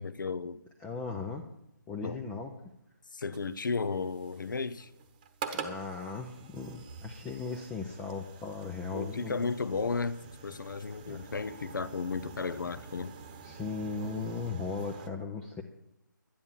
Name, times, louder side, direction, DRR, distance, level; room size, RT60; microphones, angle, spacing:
voice 1, 0.0-0.6 2.0-2.2 3.1-4.9 8.9-13.1, left 4 dB, 70° left, 0.9 m, -34 dB
voice 2, 0.8-1.4 1.9-2.5 5.5-9.6 11.1-11.2 13.4-15.6, left 4 dB, 5° left, 0.4 m, -37 dB
sound 1, 3.3-15.1, right 5 dB, 25° right, 1.0 m, -46 dB
11.0 x 10.5 x 7.3 m
figure-of-eight pair, 160°, 11 cm